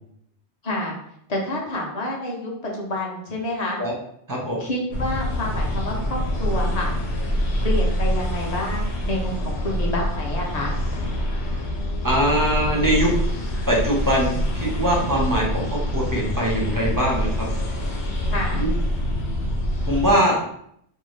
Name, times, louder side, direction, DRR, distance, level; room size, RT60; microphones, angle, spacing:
voice 1, 0.6-0.9 1.3-3.8 4.6-6.9 7.6-10.7 18.3-18.7, left 1 dB, 45° left, -2 dB, 0.6 m, -28 dB
sound 1, 4.9-20.1, equal, 70° left, 0.9 m, -25 dB
voice 2, 12.0-13.1 13.7-17.5 18.6-18.7 19.9-20.4, right 1 dB, 25° right, -3 dB, 0.5 m, -22 dB
2.6 x 2.4 x 3.1 m, 0.70 s
omnidirectional pair, 1.2 m